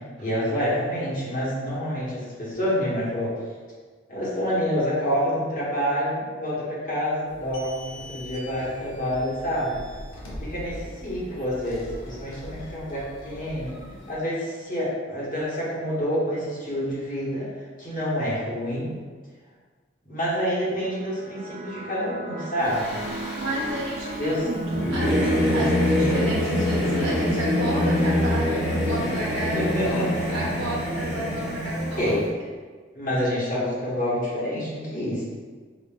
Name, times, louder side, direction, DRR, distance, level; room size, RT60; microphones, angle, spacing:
voice 1, 0.2-3.4 4.1-9.8 10.4-13.7 14.1-17.5 17.8-18.9 20.1-22.9 24.2-24.4 29.6-30.1 32.0-32.3 32.9-35.2, equal, 45° left, -8 dB, 1.2 m, -27 dB
sound 1, 7.3-14.2, left 1 dB, 90° left, 0.7 m, -41 dB
sound 2, 20.7-31.7, right 2 dB, 40° right, 0.3 m, -39 dB
Singing / Musical instrument, 22.6-32.2, left 1 dB, 60° left, 1.2 m, -25 dB
voice 2, 23.4-32.3, right 1 dB, 85° right, -5 dB, 1.1 m, -31 dB
5.1 x 2.4 x 2.4 m, 1.5 s
head